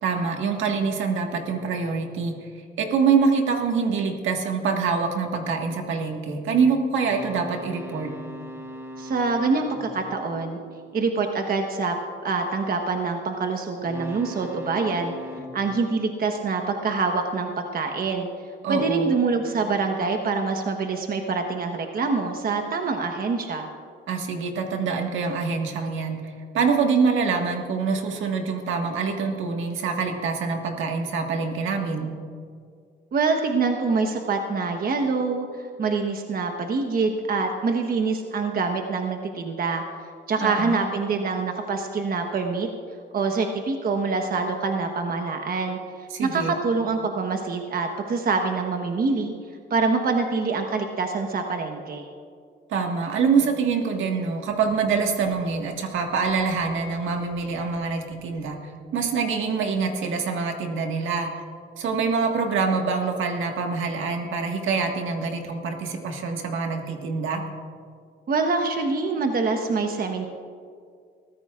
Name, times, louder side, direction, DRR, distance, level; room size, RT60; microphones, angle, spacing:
voice 1, 0.0-2.3 2.8-8.1 18.6-19.1 24.1-26.2 26.5-32.1 40.4-40.8 46.1-46.5 52.7-58.6 58.9-61.3 61.8-67.4, right 5 dB, 75° right, 3 dB, 1.7 m, -25 dB
sound 1, 7.1-11.5 13.8-17.1, equal, 10° right, 1.2 m, -41 dB
voice 2, 9.0-10.6 10.9-11.9 12.2-15.1 15.5-18.3 18.7-23.7 33.1-39.8 40.3-42.7 43.1-49.3 49.7-52.1 68.3-70.3, right 4 dB, 50° right, 4 dB, 1.2 m, -25 dB
22.0 x 14.5 x 2.5 m, 2.2 s
cardioid pair, 90°, 20 cm